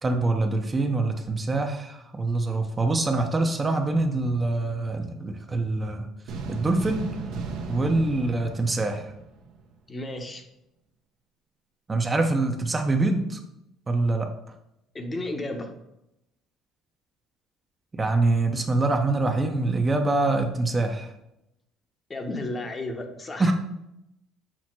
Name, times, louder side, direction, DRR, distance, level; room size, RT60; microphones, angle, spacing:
voice 1, 0.0-6.1 6.5-7.1 7.6-9.1 11.9-13.4 13.9-14.3 17.9-21.1 23.4-23.5, right 2 dB, 25° right, 5 dB, 0.5 m, -24 dB
sound 1, 6.3-9.7, right 4 dB, 75° right, 0.6 m, -35 dB
voice 2, 9.9-10.4 14.9-15.7 22.1-23.5, left 2 dB, 30° left, 5 dB, 0.8 m, -33 dB
5.9 x 2.1 x 4.3 m, 0.86 s
supercardioid pair, 80°, 0 cm